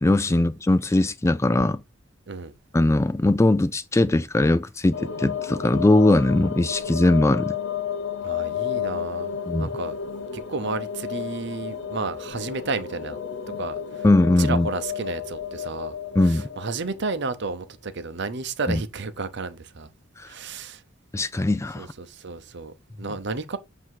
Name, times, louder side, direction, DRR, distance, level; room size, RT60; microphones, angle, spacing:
voice 1, 0.0-1.8 2.7-7.6 9.5-9.7 14.0-14.7 16.2-16.4 18.7-18.8 21.1-21.9, left 2 dB, 15° left, 0.3 m, -20 dB
sound 1, 4.9-17.4, left 8 dB, 70° left, 0.9 m, -32 dB
voice 2, 8.2-10.0 10.3-13.2 13.6-14.1 14.4-16.0 16.2-19.9 20.2-20.8 21.8-23.6, right 4 dB, 60° right, 0.8 m, -32 dB
7.8 x 2.8 x 4.6 m
head